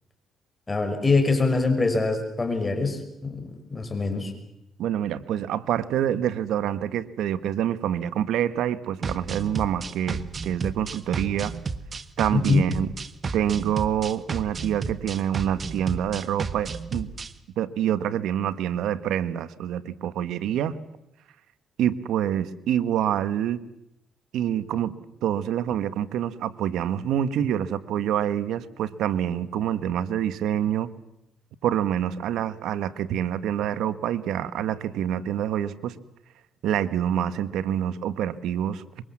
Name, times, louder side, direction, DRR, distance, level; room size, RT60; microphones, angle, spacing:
voice 1, 0.7-4.3 12.5-12.7, left 3 dB, 25° left, 6 dB, 5.7 m, -24 dB
voice 2, 4.8-11.5 12.2-12.9 13.3-17.1 17.6-20.7 21.8-23.6 24.3-24.9 25.2-30.9 31.6-36.0 36.6-38.8, right 10 dB, 85° right, 14 dB, 1.3 m, -26 dB
sound 1, 9.0-17.3, right 4 dB, 40° right, 1.3 m, -33 dB
24.5 x 23.0 x 7.4 m, 0.85 s
cardioid pair, 90°, 0 cm